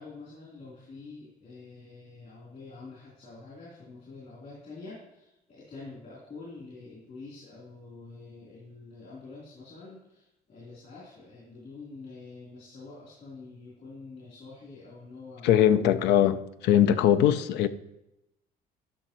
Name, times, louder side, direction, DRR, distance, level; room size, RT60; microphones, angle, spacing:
voice 1, 0.0-15.6, left 3 dB, 50° left, 3.3 m, -46 dB
voice 2, 15.4-17.7, left 10 dB, 85° left, 0.5 m, -21 dB
11.5 x 5.7 x 3.0 m
cardioid pair, 110°, 17 cm